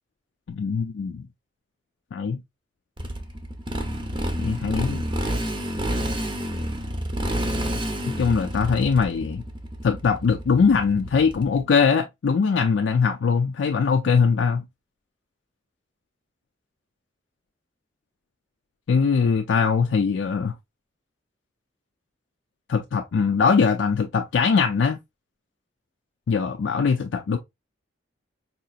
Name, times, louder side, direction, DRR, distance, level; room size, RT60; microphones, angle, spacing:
voice 1, 0.5-1.3 2.1-2.4 4.4-5.0 8.2-9.4 9.8-14.6 18.9-20.5 22.7-25.0 26.3-27.4, left 5 dB, 85° left, 0.4 m, -21 dB
Motorcycle, 3.0-11.6, equal, 25° right, 0.7 m, -29 dB
4.1 x 2.8 x 2.3 m
head